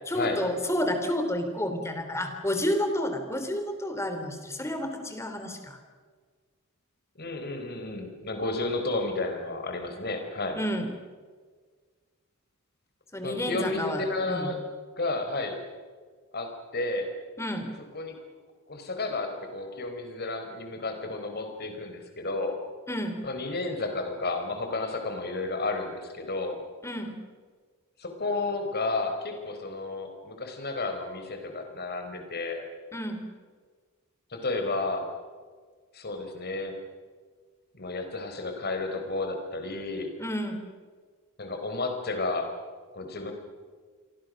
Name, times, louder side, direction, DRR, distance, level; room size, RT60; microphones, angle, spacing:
voice 1, 0.1-5.8 10.5-10.9 13.1-14.6 17.4-17.7 22.9-23.2 26.8-27.2 32.9-33.2 40.2-40.6, left 1 dB, 10° left, 6 dB, 3.2 m, -30 dB
voice 2, 7.2-10.6 13.2-14.6 15.0-15.6 16.3-17.1 17.9-18.2 18.7-22.6 23.2-26.6 28.0-32.6 34.3-35.1 35.9-36.8 37.7-40.1 41.4-42.5 42.9-43.3, left 2 dB, 45° left, 5 dB, 4.3 m, -32 dB
28.5 x 23.0 x 6.4 m, 1.6 s
head